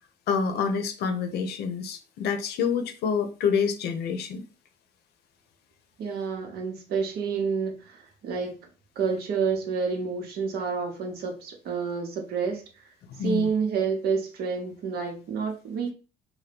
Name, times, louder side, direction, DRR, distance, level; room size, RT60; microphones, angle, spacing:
voice 1, 0.3-4.4 13.1-13.5, left 6 dB, 70° left, 0.6 m, -27 dB
voice 2, 6.0-8.6 9.0-12.9 13.2-15.9, right 5 dB, 65° right, 0.9 m, -29 dB
2.8 x 2.2 x 3.4 m
cardioid pair, 110°, 17 cm